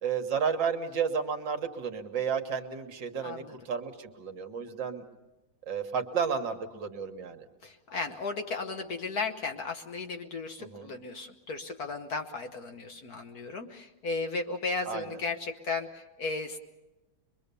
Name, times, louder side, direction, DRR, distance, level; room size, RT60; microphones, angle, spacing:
voice 1, 0.0-5.0 5.7-7.4 10.6-10.9 14.9-15.1, right 6 dB, 65° right, 5 dB, 1.9 m, -32 dB
voice 2, 3.2-3.6 7.6-16.6, left 3 dB, 55° left, 5 dB, 1.3 m, -35 dB
23.5 x 23.0 x 6.9 m, 1.1 s
omnidirectional pair, 2.2 m